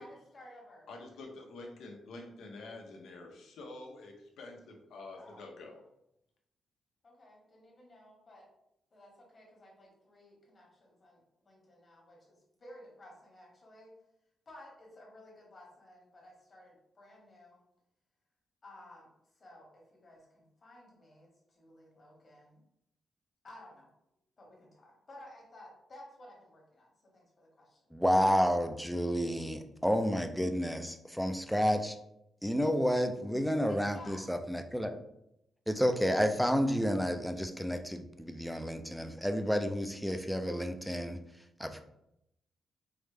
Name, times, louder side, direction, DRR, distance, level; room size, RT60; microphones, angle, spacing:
voice 1, 0.0-0.9 5.1-5.4 7.0-8.5 8.9-14.0 14.4-17.6 18.6-22.6 23.4-23.9 24.4-28.0 33.7-34.2, left 1 dB, 35° left, -2 dB, 1.2 m, -55 dB
voice 2, 0.9-5.8, left 2 dB, 85° left, 1 dB, 0.8 m, -47 dB
voice 3, 27.9-32.0 32.4-34.9 35.7-41.8, equal, ahead, 7 dB, 0.3 m, -30 dB
4.7 x 2.1 x 3.3 m, 0.81 s
wide cardioid pair, 155°, 0 cm